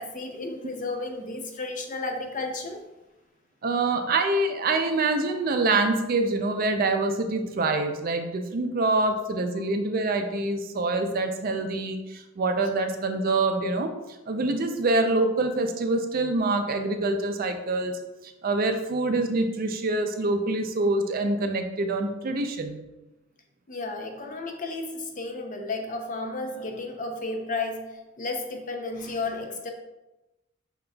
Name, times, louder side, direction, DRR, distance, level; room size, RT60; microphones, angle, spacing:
voice 1, 0.0-2.8 9.5-9.6 23.7-29.7, left 3 dB, 40° left, 3 dB, 0.5 m, -33 dB
voice 2, 3.6-13.9 14.3-17.9 18.4-22.8, right 2 dB, 45° right, 6 dB, 0.4 m, -25 dB
5.2 x 3.8 x 2.3 m, 1.0 s
head